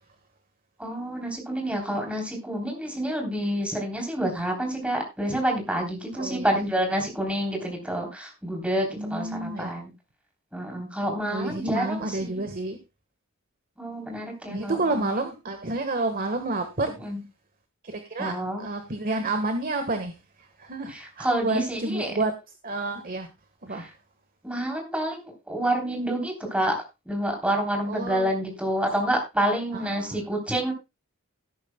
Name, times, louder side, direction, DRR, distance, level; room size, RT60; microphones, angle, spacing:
voice 1, 0.8-9.9 10.5-12.3 13.8-14.8 15.0-15.2 17.0-17.2 18.2-18.6 20.9-22.1 24.4-26.8 27.0-30.7, right 1 dB, 5° right, 3.4 m, -28 dB
voice 2, 6.1-6.6 8.6-9.7 11.3-12.8 14.5-17.1 17.8-22.3 22.6-23.3 23.6-23.9 27.9-28.3 29.7-30.4, right 2 dB, 40° right, 1.4 m, -30 dB
18.0 x 9.2 x 2.2 m
head